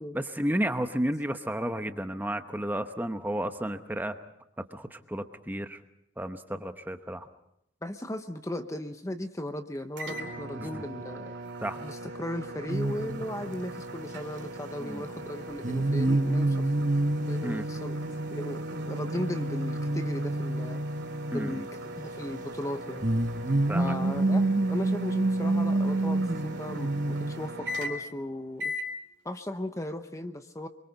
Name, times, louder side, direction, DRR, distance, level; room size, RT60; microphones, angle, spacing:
voice 1, 0.1-4.1 4.7-5.8 6.2-7.3 10.5-10.8 11.6-11.8 14.8-15.0 17.4-17.7 21.3-21.6 23.7-23.9, right 1 dB, 10° right, 8 dB, 0.9 m, -32 dB
voice 2, 7.8-11.3 11.8-16.7 17.3-18.0 18.3-18.6 18.9-20.8 21.3-23.1 23.8-28.7 29.2-30.7, left 1 dB, 15° left, 8 dB, 0.9 m, -36 dB
sound 1, 10.0-28.2 28.6-28.9, right 1 dB, 65° right, 3.1 m, -40 dB
sound 2, 12.7-13.7 15.6-21.6 23.0-27.5, right 2 dB, 40° right, 1.3 m, -28 dB
25.5 x 23.5 x 5.4 m, 0.78 s
head